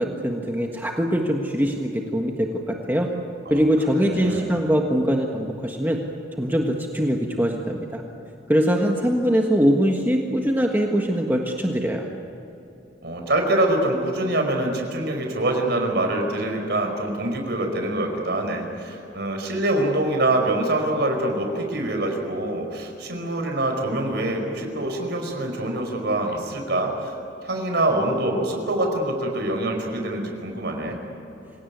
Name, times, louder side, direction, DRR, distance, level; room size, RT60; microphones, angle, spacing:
voice 1, 0.0-3.1 3.5-6.0 6.4-8.0 8.5-12.1, equal, 10° right, 1 dB, 1.6 m, -22 dB
voice 2, 4.0-4.5 13.0-27.1 27.4-31.0, right 1 dB, 65° right, 3 dB, 5.0 m, -25 dB
26.0 x 17.5 x 9.5 m, 2.9 s
head